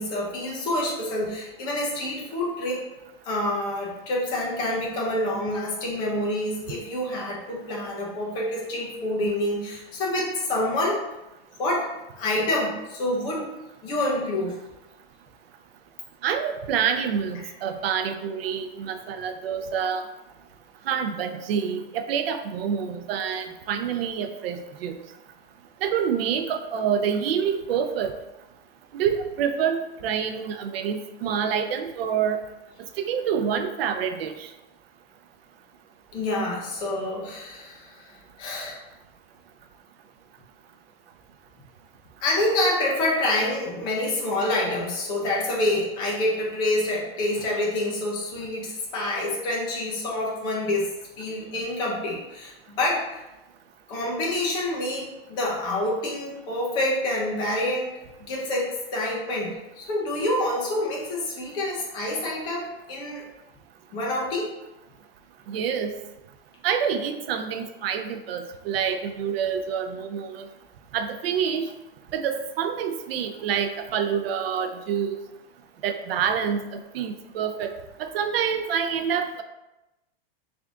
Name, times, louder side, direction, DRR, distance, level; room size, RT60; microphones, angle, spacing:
voice 1, 0.0-2.8 3.2-11.0 11.6-11.9 12.2-13.5 13.8-14.6 36.1-38.8 42.2-50.9 51.2-53.2 53.9-57.9 58.2-63.2 63.9-64.5, left 1 dB, 15° left, -3 dB, 0.4 m, -27 dB
voice 2, 16.2-20.0 20.9-25.0 25.8-28.1 28.9-32.4 33.0-34.5 65.5-65.9 66.6-70.5 70.9-71.7 72.1-75.2 75.8-77.7 78.0-79.4, right 7 dB, 70° right, 7 dB, 0.5 m, -27 dB
3.5 x 2.5 x 3.4 m, 0.97 s
supercardioid pair, 170°, 31 cm